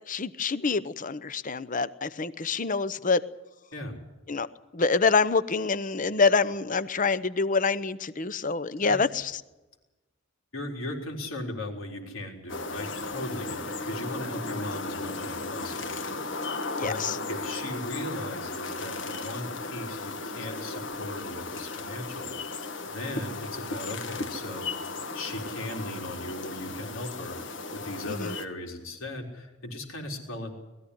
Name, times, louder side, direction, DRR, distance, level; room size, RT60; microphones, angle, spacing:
voice 1, 0.1-3.2 4.3-4.5 4.7-9.4 16.8-17.2 28.1-28.3, left 4 dB, 40° left, 15 dB, 0.8 m, -26 dB
voice 2, 10.5-16.5 16.8-17.0 17.3-22.6 22.9-24.7 25.1-30.5, left 1 dB, 85° left, 2 dB, 4.1 m, -38 dB
sound 1, 12.5-28.5, left 3 dB, 65° left, 1.6 m, -35 dB
20.0 x 14.5 x 10.0 m, 1.1 s
head